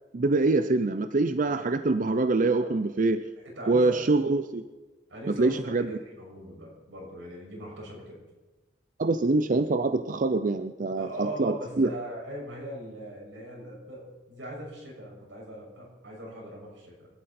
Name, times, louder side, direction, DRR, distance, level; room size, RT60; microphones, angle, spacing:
voice 1, 0.1-3.2 3.7-4.6 5.3-5.9 9.0-11.9, right 3 dB, 45° right, 10 dB, 0.6 m, -25 dB
voice 2, 3.4-4.0 5.1-5.6 6.0-8.1 11.0-14.0 14.3-17.1, right 1 dB, 90° right, -2 dB, 6.5 m, -40 dB
26.0 x 13.0 x 4.3 m, 1.2 s
head